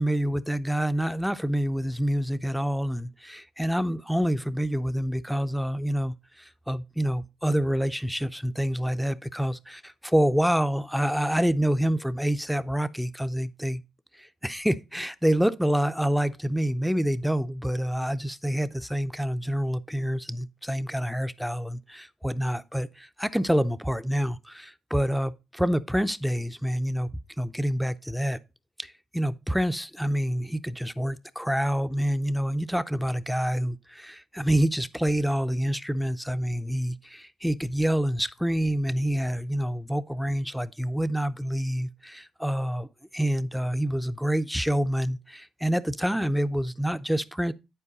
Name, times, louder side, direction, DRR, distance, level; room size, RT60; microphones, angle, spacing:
voice 1, 0.0-13.8 14.2-27.1 27.4-28.4 28.8-42.9 43.1-47.5, equal, ahead, 0.5 m, -27 dB
10.0 x 4.6 x 4.0 m
cardioid pair, 90°, 0 cm